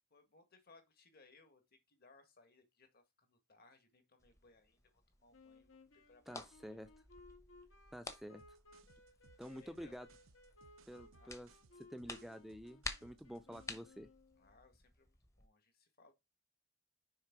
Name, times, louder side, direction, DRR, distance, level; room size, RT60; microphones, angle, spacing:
voice 1, 0.1-6.5 6.8-6.9 9.5-9.9 11.1-11.4 14.4-16.1, left 3 dB, 50° left, 1.8 m, -67 dB
sound 1, 4.2-15.5, left 3 dB, 15° left, 0.8 m, -53 dB
sound 2, 5.3-14.5, left 2 dB, 70° left, 2.0 m, -63 dB
voice 2, 6.3-6.9 7.9-8.6 9.4-10.1 10.9-11.5 11.8-14.1, equal, ahead, 0.4 m, -49 dB
sound 3, 8.4-13.9, right 4 dB, 80° right, 0.7 m, -66 dB
6.5 x 4.5 x 4.6 m
head